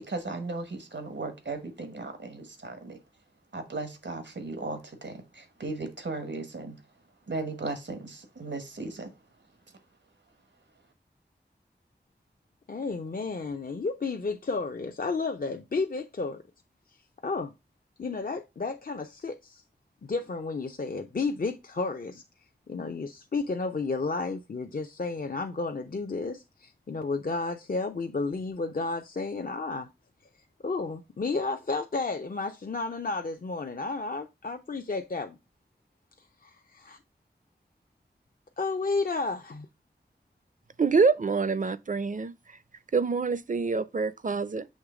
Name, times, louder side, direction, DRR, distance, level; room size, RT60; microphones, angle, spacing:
voice 1, 0.0-3.0 3.5-6.8 7.3-9.1, right 3 dB, 85° right, 1.2 m, -36 dB
voice 2, 12.7-16.4 17.2-17.5 18.0-19.6 20.0-22.2 22.7-29.9 30.6-35.4 36.4-37.0 38.6-39.7, left 3 dB, 55° left, 0.5 m, -32 dB
voice 3, 40.8-42.3 42.9-44.7, right 4 dB, 45° right, 0.5 m, -26 dB
6.5 x 3.0 x 4.8 m
wide cardioid pair, 50°, 18 cm